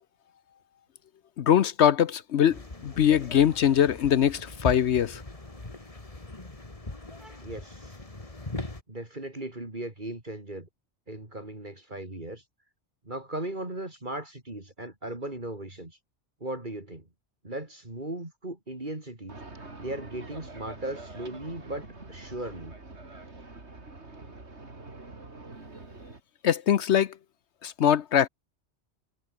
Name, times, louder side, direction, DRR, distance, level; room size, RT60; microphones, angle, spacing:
voice 1, 1.4-5.2 26.4-27.1 27.6-28.3, left 9 dB, 75° left, 1.0 m, -22 dB
sound 1, 2.5-8.8, left 2 dB, 30° left, 2.4 m, -40 dB
voice 2, 7.2-8.0 8.9-10.7 11.1-12.4 13.0-16.0 16.4-17.1 17.4-19.4 19.8-22.8, right 1 dB, 40° right, 3.9 m, -37 dB
sound 2, 19.3-26.2, right 3 dB, 70° right, 3.8 m, -45 dB
omnidirectional pair, 1.2 m